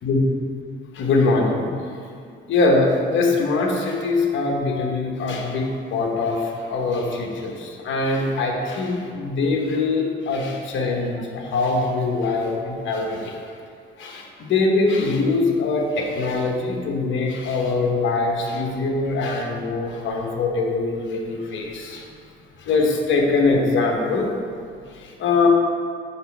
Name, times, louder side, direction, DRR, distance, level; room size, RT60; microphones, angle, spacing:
voice 1, 0.9-1.7 2.5-13.4 14.0-22.0 22.6-24.3 24.9-25.5, left 3 dB, 75° left, 1 dB, 1.1 m, -22 dB
7.1 x 6.2 x 3.4 m, 2.3 s
cardioid pair, 90°, 20 cm